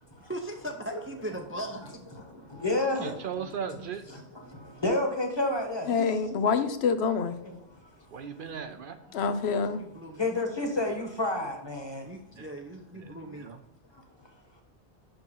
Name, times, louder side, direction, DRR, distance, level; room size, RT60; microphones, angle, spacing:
voice 1, 0.2-2.0 9.8-10.3 12.0-13.5, right 1 dB, 15° right, 3 dB, 0.5 m, -38 dB
voice 2, 2.2-3.2 4.4-6.4 7.4-7.9 10.2-12.1 13.9-14.0, left 2 dB, 25° left, 3 dB, 1.3 m, -31 dB
voice 3, 3.0-4.0 8.1-9.0 12.4-12.5 12.9-13.6, right 7 dB, 60° right, 8 dB, 0.7 m, -38 dB
voice 4, 5.9-7.4 9.1-9.8, left 5 dB, 80° left, 10 dB, 0.9 m, -26 dB
5.9 x 5.3 x 5.4 m, 0.76 s
omnidirectional pair, 1.1 m